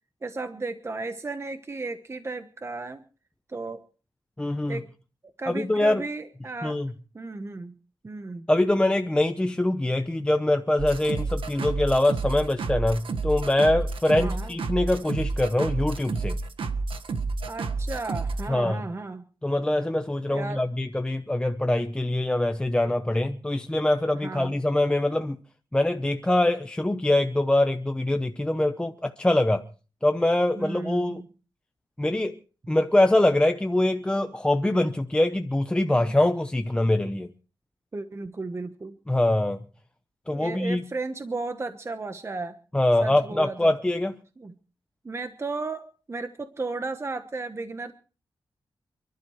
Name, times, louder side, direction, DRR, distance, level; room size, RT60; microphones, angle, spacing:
voice 1, 0.2-3.0 3.5-3.8 4.7-4.9 5.4-6.8 7.1-7.7 8.0-8.5 14.1-14.5 17.5-19.2 20.3-20.7 24.2-24.5 30.5-31.3 35.9-36.1 37.9-39.0 40.3-42.6 43.0-43.7 44.4-44.5 45.0-47.9, right 3 dB, 30° right, 1.1 m, -34 dB
voice 2, 4.4-4.8 5.5-6.0 6.6-6.9 8.5-16.4 18.5-18.9 19.4-25.4 25.7-29.6 30.0-31.2 32.0-32.4 32.7-37.3 39.1-39.6 40.3-40.8 42.7-44.1, left 1 dB, 10° left, 0.8 m, -24 dB
sound 1, 10.8-18.5, right 3 dB, 75° right, 1.5 m, -30 dB
28.5 x 12.0 x 3.2 m
wide cardioid pair, 100°, 9 cm